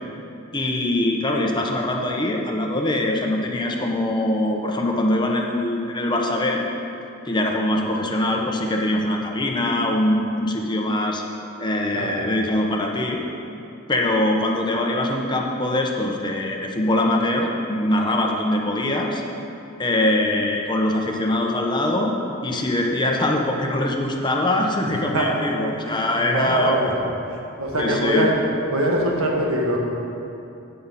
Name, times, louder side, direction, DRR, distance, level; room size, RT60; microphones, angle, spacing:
voice 1, 0.5-6.6 7.3-11.2 11.6-13.2 13.9-19.2 19.8-22.1 22.4-26.8 27.8-28.3, left 1 dB, 20° left, 0 dB, 1.0 m, -22 dB
voice 2, 11.9-12.3 24.8-25.3 25.8-26.9 27.3-28.3 28.7-29.8, right 1 dB, 75° right, -1 dB, 1.7 m, -24 dB
16.0 x 6.8 x 4.2 m, 2.8 s
head